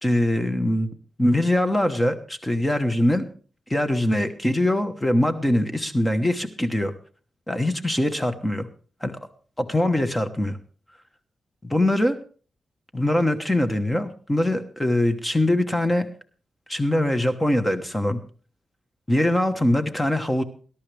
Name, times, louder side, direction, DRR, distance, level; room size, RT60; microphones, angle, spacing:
voice 1, 0.0-0.9 1.2-3.2 3.7-6.9 7.5-8.7 9.0-9.2 9.6-10.6 11.6-12.2 12.9-16.1 16.7-18.2 19.1-20.4, left 1 dB, 10° left, 9 dB, 1.1 m, -22 dB
20.5 x 11.5 x 3.4 m, 0.40 s
wide cardioid pair, 130°, 0 cm